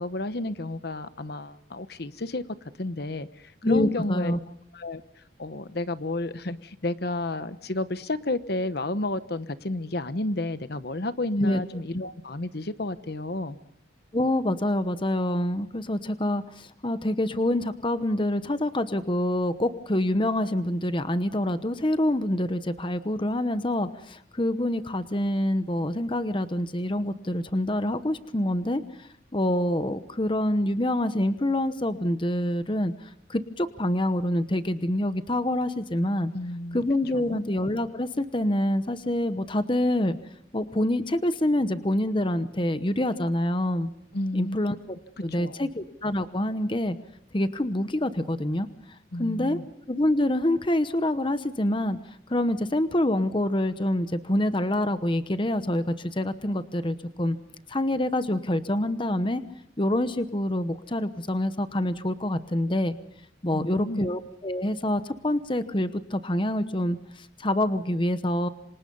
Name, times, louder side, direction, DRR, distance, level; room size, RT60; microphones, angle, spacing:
voice 1, 0.0-2.4 2.8-4.3 4.7-5.0 5.4-13.6 36.3-36.8 37.1-37.4 44.1-44.6 45.4-45.7 49.1-49.6 63.5-64.0, left 2 dB, 55° left, 1.0 m, -31 dB
voice 2, 3.6-4.4 11.4-11.6 14.1-36.3 36.7-40.2 40.5-43.9 44.3-45.0 45.2-47.0 47.3-48.7 49.2-49.6 49.9-52.0 52.3-57.4 57.7-59.4 59.8-63.0 63.4-68.5, left 1 dB, 25° left, 1.0 m, -26 dB
27.5 x 26.5 x 5.5 m
head